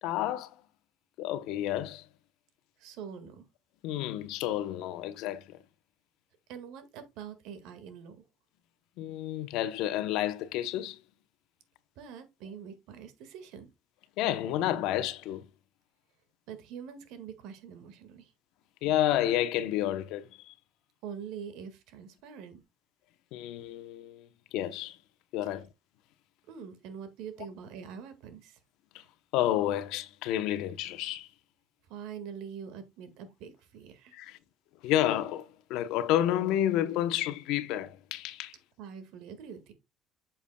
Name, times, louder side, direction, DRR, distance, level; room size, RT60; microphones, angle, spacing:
voice 1, 0.0-0.5 1.2-2.1 3.8-5.6 9.0-11.0 14.2-15.5 18.8-20.5 23.3-25.0 25.3-25.7 28.9-29.0 29.3-31.3 34.1-34.4 34.8-38.5, left 12 dB, 75° left, 0.8 m, -30 dB
voice 2, 2.8-3.5 6.5-8.2 12.0-13.7 16.5-18.3 21.0-22.6 26.5-28.6 31.9-34.2 38.8-39.7, right 7 dB, 75° right, 1.8 m, -44 dB
8.4 x 7.0 x 2.3 m
cardioid pair, 115°, 0 cm